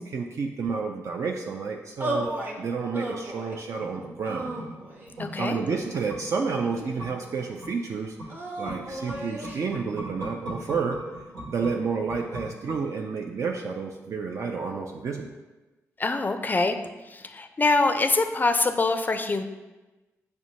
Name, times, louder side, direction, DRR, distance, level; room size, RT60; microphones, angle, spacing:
voice 1, 0.0-2.3 2.6-4.5 5.4-8.2 8.6-11.0 11.5-15.4, right 5 dB, 55° right, 1 dB, 0.4 m, -30 dB
sound 1, 2.0-2.6 2.9-3.6 4.2-5.2 5.9-6.9 8.3-9.6, right 1 dB, 30° right, 0.8 m, -34 dB
sound 2, 3.8-13.3 13.6-13.7, equal, 85° right, 0.9 m, -41 dB
voice 2, 5.2-5.6 16.0-16.8 17.1-19.4, left 3 dB, 30° left, 8 dB, 0.4 m, -24 dB
5.8 x 2.2 x 2.7 m, 1.1 s
supercardioid pair, 50°, 6 cm